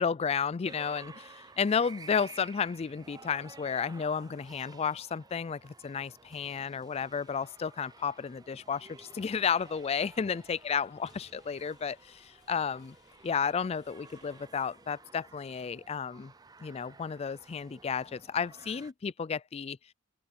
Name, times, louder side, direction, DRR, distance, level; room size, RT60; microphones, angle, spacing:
voice 1, 0.0-13.0 13.2-16.3 16.6-19.8, left 6 dB, 30° left, 0.3 m, -32 dB
sound 1, 0.6-18.9, right 4 dB, 20° right, 0.6 m, -54 dB
sound 2, 9.4-14.5, left 6 dB, 60° left, 6.8 m, -65 dB
open air
head